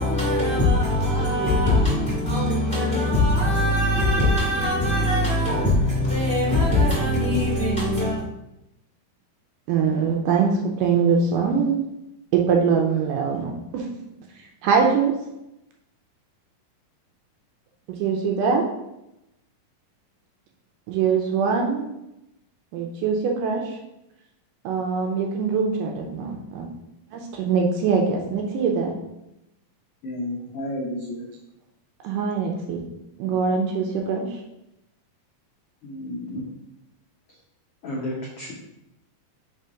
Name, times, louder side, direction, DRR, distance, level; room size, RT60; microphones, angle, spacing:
voice 1, 0.0-8.2, left 1 dB, 20° left, 1.5 m, -21 dB
voice 2, 9.7-11.8 12.3-13.9 14.6-15.1 17.9-18.6 20.9-21.9 22.7-23.8 24.6-26.7 27.1-28.9 32.0-32.8 33.2-34.4, right 5 dB, 80° right, 2.2 m, -23 dB
voice 3, 30.0-31.2 35.8-36.4 37.8-38.5, left 1 dB, 80° left, 1.3 m, -31 dB
5.6 x 3.4 x 5.0 m
omnidirectional pair, 4.1 m